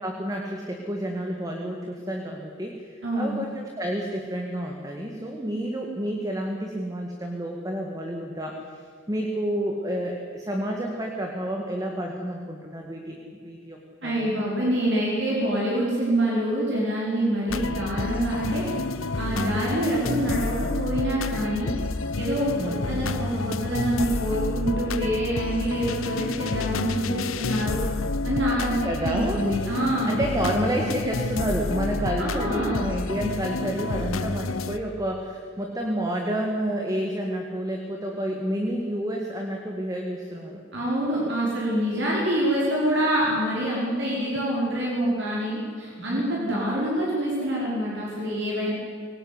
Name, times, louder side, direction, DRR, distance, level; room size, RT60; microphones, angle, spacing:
voice 1, 0.0-8.6 9.1-14.4 22.6-23.0 28.8-29.4 30.1-40.6 46.0-46.3, right 1 dB, 15° right, 1 dB, 2.0 m, -30 dB
voice 2, 3.0-3.4 14.0-18.6 19.2-21.7 22.2-22.6 22.9-27.8 28.2-28.8 29.0-30.2 32.2-32.9 40.7-48.7, right 1 dB, 60° right, -5 dB, 5.3 m, -26 dB
sound 1, 17.5-34.8, left 3 dB, 85° left, 1.0 m, -29 dB
23.5 x 18.5 x 9.8 m, 2.1 s
head